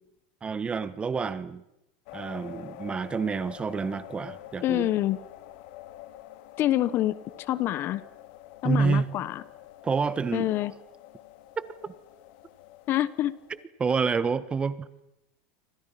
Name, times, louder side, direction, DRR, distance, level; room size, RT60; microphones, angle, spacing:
voice 1, 0.4-1.6 2.1-4.9 8.6-9.1 9.8-10.5 11.6-11.9 13.8-14.9, right 5 dB, 20° right, 15 dB, 1.4 m, -28 dB
sound 1, 2.1-13.6, left 14 dB, 65° left, 2.2 m, -47 dB
voice 2, 4.6-5.2 6.6-8.0 8.6-9.4 10.3-10.7 12.9-13.3, left 13 dB, 45° left, 18 dB, 1.2 m, -26 dB
30.0 x 25.0 x 5.9 m, 0.87 s
supercardioid pair, 125°, 5 cm